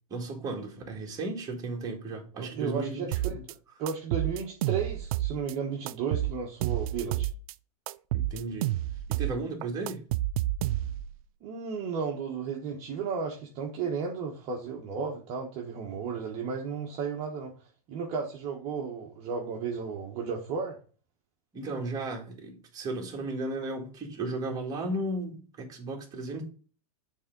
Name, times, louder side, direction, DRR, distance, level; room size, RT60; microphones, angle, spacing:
voice 1, 0.1-3.4 8.1-8.7 9.1-10.0 21.5-26.4, right 2 dB, 20° right, 1.9 m, -35 dB
voice 2, 2.4-3.4 3.8-7.3 11.4-17.5 17.9-20.8, right 6 dB, 35° right, 1.2 m, -34 dB
sound 1, 3.1-3.5 3.9-5.5 5.9-7.5 7.9-9.4 9.6-11.1, right 14 dB, 65° right, 0.4 m, -30 dB
7.1 x 3.6 x 5.2 m
supercardioid pair, 155°, 20 cm